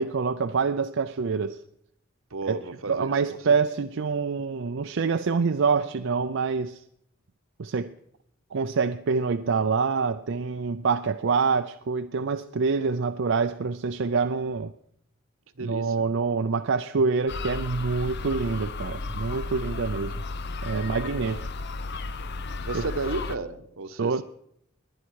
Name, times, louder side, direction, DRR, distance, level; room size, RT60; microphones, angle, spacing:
voice 1, 0.0-1.6 2.5-2.6 2.9-6.8 7.6-7.9 8.5-14.7 15.6-20.2 20.6-21.4 22.7-22.9 24.0-24.2, right 5 dB, 60° right, 0.5 m, -26 dB
voice 2, 2.3-3.5 15.6-16.1 20.8-21.4 22.6-24.2, right 3 dB, 80° right, 1.0 m, -34 dB
sound 1, 17.3-23.4, left 3 dB, 55° left, 0.7 m, -34 dB
20.0 x 10.5 x 4.7 m
head